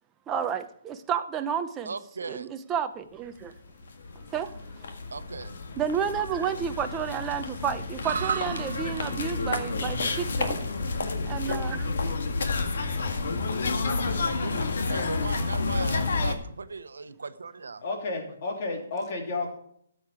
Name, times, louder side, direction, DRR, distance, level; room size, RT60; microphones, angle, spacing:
voice 1, 0.3-1.9 2.3-3.5 4.3-4.5 5.8-10.6 11.3-11.9 13.9-14.0, right 8 dB, 15° right, 7 dB, 0.6 m, -31 dB
voice 2, 1.8-2.5 5.1-5.5 14.2-17.8, right 4 dB, 85° right, 11 dB, 0.9 m, -38 dB
sound 1, 3.6-3.7 3.8-16.4, left 3 dB, 65° left, 1.7 m, -30 dB
sound 2, 8.0-16.4, right 5 dB, 70° right, 1.2 m, -39 dB
voice 3, 17.8-19.6, left 3 dB, 45° left, 1 dB, 3.1 m, -32 dB
13.0 x 7.4 x 4.9 m, 0.69 s
hypercardioid pair, 155°, 0 cm